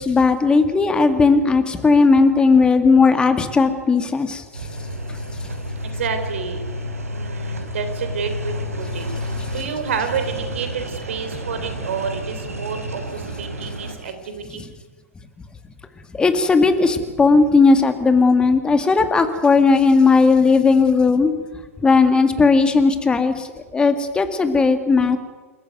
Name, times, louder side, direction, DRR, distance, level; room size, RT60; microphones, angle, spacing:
voice 1, 0.0-4.4 16.1-21.3 21.8-23.5 23.7-25.2, left 4 dB, 10° left, 8 dB, 2.1 m, -16 dB
sound 1, 4.5-14.0, equal, 75° right, 3.6 m, -30 dB
voice 2, 5.8-6.6 7.1-14.6, right 6 dB, 55° right, 8 dB, 3.8 m, -29 dB
28.5 x 14.5 x 9.4 m, 1.3 s
figure-of-eight pair, 105°, 8 cm